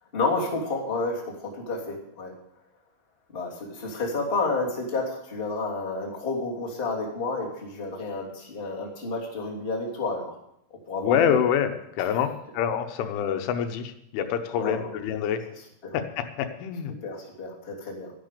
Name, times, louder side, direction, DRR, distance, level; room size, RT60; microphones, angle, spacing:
voice 1, 0.1-2.3 3.3-10.4 10.9-11.4 14.6-14.9 15.8-15.9 16.9-18.1, left 3 dB, 15° left, -3 dB, 2.4 m, -30 dB
voice 2, 11.0-12.3 12.5-15.4 15.9-16.9, left 9 dB, 85° left, 7 dB, 3.5 m, -26 dB
13.0 x 10.5 x 6.8 m, 0.79 s
omnidirectional pair, 5.4 m